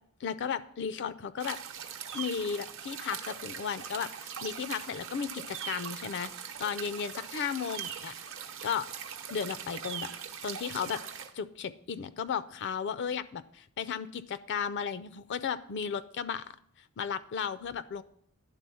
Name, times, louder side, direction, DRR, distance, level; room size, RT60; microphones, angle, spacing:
voice 1, 0.2-1.6 2.1-6.3 6.6-8.1 8.6-8.9 9.3-10.1 10.4-11.0 11.3-16.5 17.0-18.0, left 7 dB, 55° left, 14 dB, 0.4 m, -34 dB
sound 1, 1.4-11.3, right 8 dB, 60° right, 0.8 m, -41 dB
11.0 x 3.9 x 6.9 m, 0.66 s
head